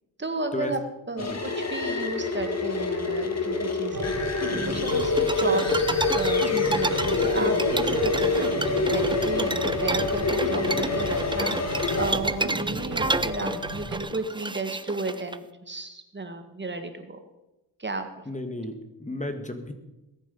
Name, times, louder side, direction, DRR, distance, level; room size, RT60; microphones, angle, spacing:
voice 1, 0.2-0.8 1.1-4.3 4.6-5.7 6.1-17.2 17.8-18.1, right 2 dB, 30° right, 7 dB, 1.7 m, -33 dB
sound 1, 1.2-12.1, left 3 dB, 45° left, 2.1 m, -26 dB
sound 2, 3.9-14.0, right 1 dB, 55° right, 3.2 m, -34 dB
sound 3, 4.9-15.4, right 3 dB, 15° right, 0.6 m, -31 dB
voice 2, 18.3-19.7, left 1 dB, 20° left, 7 dB, 1.6 m, -33 dB
21.0 x 9.1 x 5.4 m, 1.0 s
cardioid pair, 80°, 37 cm